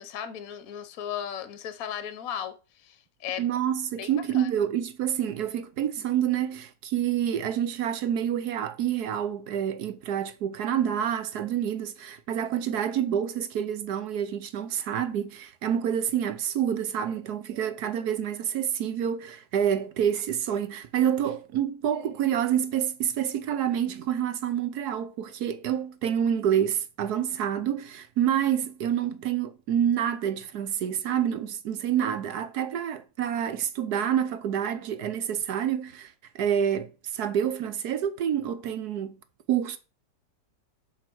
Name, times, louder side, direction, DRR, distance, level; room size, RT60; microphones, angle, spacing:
voice 1, 0.0-2.5 2.8-3.5 4.0-4.5, left 9 dB, 60° left, 1.3 m, -36 dB
voice 2, 3.4-39.2 39.5-39.8, right 9 dB, 70° right, 1.2 m, -28 dB
7.6 x 4.8 x 6.1 m
omnidirectional pair, 1.9 m